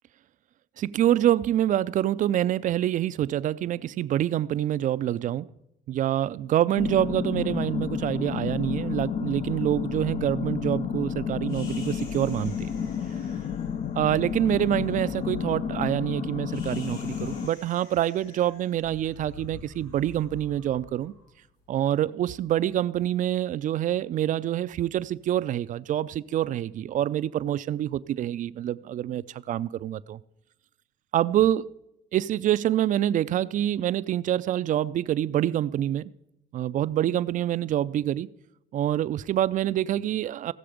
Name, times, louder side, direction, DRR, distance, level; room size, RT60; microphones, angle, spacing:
voice 1, 0.8-5.5 5.9-12.7 14.0-21.1 21.7-30.2 31.1-31.7 32.1-36.1 36.5-38.3 38.7-40.5, right 12 dB, 50° right, 0.4 m, -26 dB
sound 1, 6.8-17.5, left 7 dB, 45° left, 0.5 m, -31 dB
sound 2, 11.5-21.8, left 3 dB, 85° left, 5.8 m, -48 dB
16.0 x 6.9 x 5.0 m
cardioid pair, 110°, 17 cm